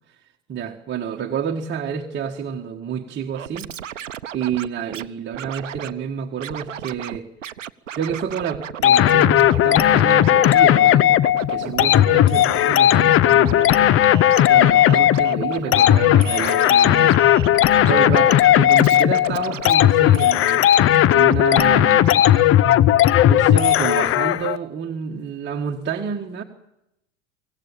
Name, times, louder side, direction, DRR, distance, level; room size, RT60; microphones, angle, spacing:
voice 1, 0.5-3.7 4.3-7.3 7.9-11.2 11.5-13.8 14.5-17.2 17.9-22.2 23.3-26.4, right 7 dB, 30° right, 1.7 m, -29 dB
Scratching (performance technique), 3.3-5.1 5.3-5.9 6.4-7.2 7.4-22.4 22.7-22.8, right 10 dB, 85° right, 0.8 m, -35 dB
sound 1, 8.8-24.6, left 12 dB, 35° left, 0.8 m, -16 dB
25.0 x 16.0 x 8.9 m
figure-of-eight pair, 80°, 37 cm